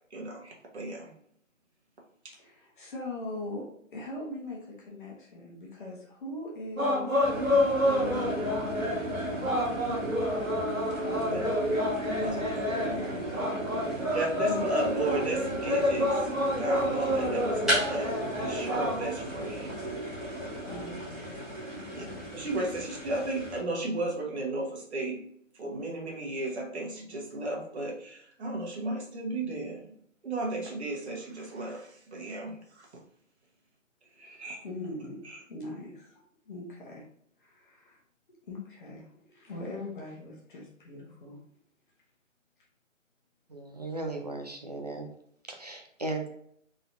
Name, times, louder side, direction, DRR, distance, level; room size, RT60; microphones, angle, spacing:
voice 1, 0.1-1.1 11.3-11.4 12.2-12.7 14.1-16.2 16.5-18.1 18.4-19.8 21.9-22.0 22.3-25.2 25.6-29.9 30.2-32.9 34.2-34.6 35.2-35.4, right 2 dB, 55° right, -1 dB, 1.5 m, -34 dB
voice 2, 2.4-3.6 3.9-7.1 7.4-9.6 10.0-11.5 12.0-12.4 12.8-14.2 14.5-14.7 20.6-22.3 34.2-35.2 35.5-36.2 36.4-37.0 37.4-38.0 38.5-41.4, left 2 dB, 40° left, -3 dB, 1.3 m, -41 dB
sound 1, 6.8-19.1, left 1 dB, 85° right, 1.4 m, -29 dB
sound 2, 7.2-23.6, right 1 dB, ahead, 1.2 m, -35 dB
voice 3, 43.5-45.1 45.4-46.3, right 2 dB, 30° right, 3 dB, 0.5 m, -36 dB
3.9 x 3.9 x 2.6 m, 0.67 s
figure-of-eight pair, 145°, 40 cm